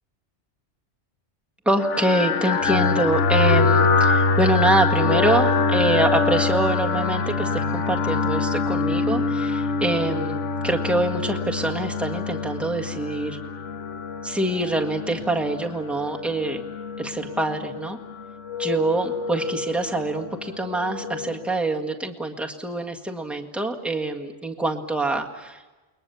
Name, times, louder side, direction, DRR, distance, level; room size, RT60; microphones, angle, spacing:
voice 1, 1.6-13.4 14.2-16.6 17.0-18.0 18.6-25.6, right 2 dB, ahead, 1 dB, 1.7 m, -25 dB
sound 1, 1.8-21.5, left 4 dB, 80° left, 1.3 m, -25 dB
29.5 x 21.5 x 7.0 m, 1.2 s
omnidirectional pair, 1.2 m